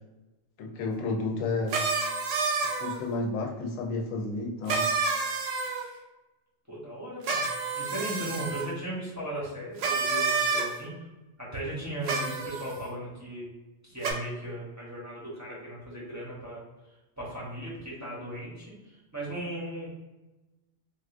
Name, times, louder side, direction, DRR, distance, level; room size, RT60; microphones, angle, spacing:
voice 1, 0.6-1.8 2.8-4.9, left 3 dB, 90° left, 2 dB, 1.0 m, -31 dB
sound 1, 1.7-3.0 4.7-5.9 7.2-8.7 9.8-10.7 12.0-12.7 14.0-14.1, right 4 dB, 75° right, 0.9 m, -29 dB
voice 2, 6.7-7.5 7.7-10.9 11.4-13.5 13.8-16.6 17.2-19.9, right 1 dB, 15° right, -7 dB, 0.7 m, -37 dB
3.6 x 2.4 x 2.4 m, 1.1 s
omnidirectional pair, 1.3 m